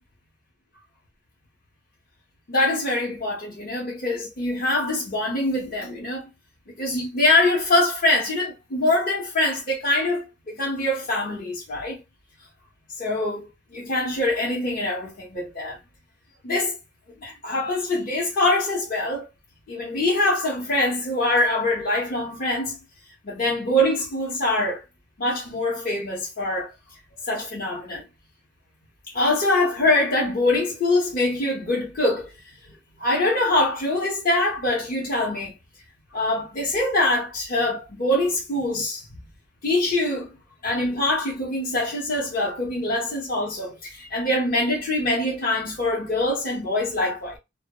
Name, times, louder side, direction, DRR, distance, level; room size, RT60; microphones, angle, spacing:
voice 1, 2.5-6.3 6.8-12.0 13.0-15.8 16.4-16.7 17.2-19.3 19.7-22.8 23.2-24.8 25.2-26.7 27.3-28.0 29.1-32.3 33.0-35.5 36.1-39.0 39.6-40.3 40.6-47.4, left 2 dB, 45° left, 0.7 m, -24 dB
2.1 x 2.0 x 2.8 m
head